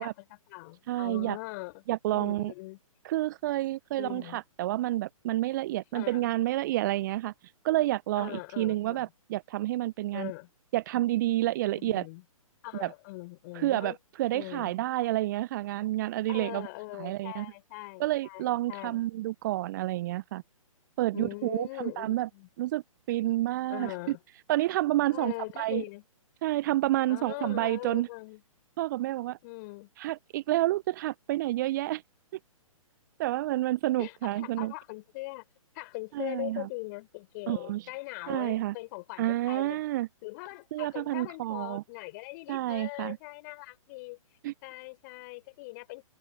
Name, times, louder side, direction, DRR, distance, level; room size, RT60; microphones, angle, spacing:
voice 1, 0.0-1.8 2.1-2.8 3.9-4.4 5.9-6.3 8.2-9.1 10.1-10.5 11.7-12.2 12.6-14.0 14.3-14.8 16.3-19.0 21.1-22.5 23.7-24.2 25.1-26.0 27.1-28.4 29.4-29.9 34.0-35.4 35.7-39.8 40.2-44.2 44.6-46.0, left 24 dB, 30° left, 5.3 m, -41 dB
voice 2, 0.9-1.4 1.9-2.5 3.0-7.3 7.6-10.3 10.7-12.1 12.8-12.9 13.5-13.9 14.2-16.7 17.0-17.5 18.0-20.4 21.0-22.3 22.6-22.8 23.1-24.1 24.5-25.8 26.4-28.1 28.8-29.4 30.0-32.0 33.2-34.7 36.1-36.7 37.5-37.9 38.3-38.7 39.2-40.1 40.7-41.8 42.5-43.2 44.4-44.5, right 16 dB, 35° right, 0.8 m, -29 dB
figure-of-eight pair, 125°, 18 cm